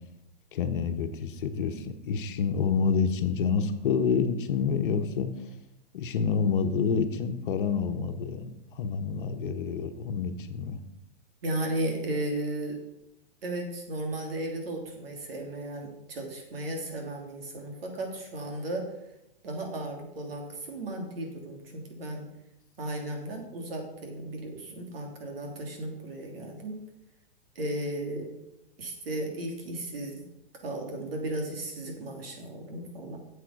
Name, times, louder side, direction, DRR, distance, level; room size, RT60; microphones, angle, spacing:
voice 1, 0.5-5.3 5.9-8.5 8.7-10.8, left 6 dB, 60° left, 7 dB, 1.2 m, -28 dB
voice 2, 11.4-12.8 13.4-18.9 19.4-22.3 22.8-26.8 27.5-28.3 28.8-30.2 30.6-33.2, right 1 dB, 75° right, 2 dB, 3.1 m, -35 dB
8.6 x 7.5 x 5.3 m, 0.86 s
hypercardioid pair, 150°, 30 cm